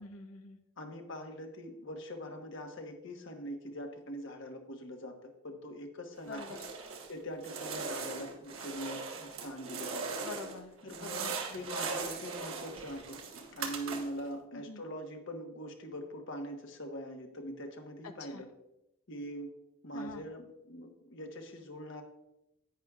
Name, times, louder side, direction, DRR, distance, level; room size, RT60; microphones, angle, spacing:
voice 1, 0.0-0.6 6.3-6.6 10.2-10.7 11.0-11.3 14.5-14.8 18.2-18.4 19.9-20.2, left 3 dB, 75° left, 6 dB, 0.7 m, -45 dB
voice 2, 0.8-10.1 10.8-13.2 13.5-18.5 19.1-19.5 19.8-22.0, equal, 55° left, 4 dB, 1.2 m, -43 dB
sound 1, 6.3-7.1 7.4-10.6 10.9-14.3, right 4 dB, 65° right, 1.1 m, -39 dB
10.5 x 9.4 x 2.4 m, 0.89 s
head